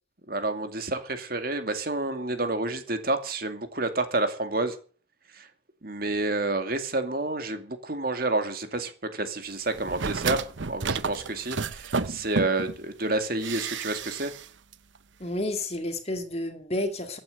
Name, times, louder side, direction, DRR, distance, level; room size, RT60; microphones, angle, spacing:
voice 1, 0.3-4.8 5.3-5.5 5.8-14.3, right 2 dB, 50° right, 2.4 m, -29 dB
sound 1, 9.7-12.8 13.4-14.5 14.7-14.8, right 4 dB, 75° right, 0.9 m, -31 dB
voice 2, 15.2-17.2, left 1 dB, 30° left, 2.1 m, -30 dB
15.5 x 9.1 x 7.8 m
head